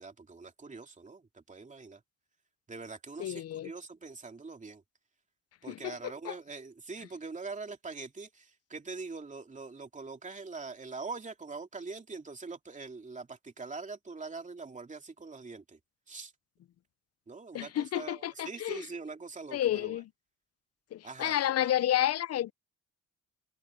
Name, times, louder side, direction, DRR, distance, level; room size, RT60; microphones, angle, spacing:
voice 1, 0.0-2.0 2.7-4.8 5.6-15.8 16.1-16.3 17.3-20.0 21.0-21.7, right 4 dB, 25° right, 2.7 m, -43 dB
voice 2, 3.2-3.7 5.7-6.3 17.5-18.9 19.5-20.1 20.9-22.5, left 12 dB, 55° left, 0.5 m, -31 dB
cardioid pair, 90°, 30 cm